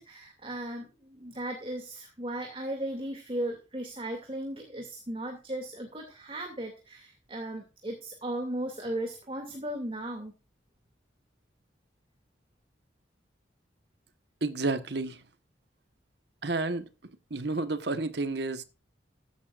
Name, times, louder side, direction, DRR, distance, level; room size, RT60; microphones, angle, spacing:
voice 1, 0.0-10.3, right 1 dB, 30° right, 2.5 m, -36 dB
voice 2, 14.4-15.2 16.4-16.9 17.3-18.6, right 3 dB, 65° right, 1.3 m, -30 dB
15.5 x 11.0 x 2.5 m
head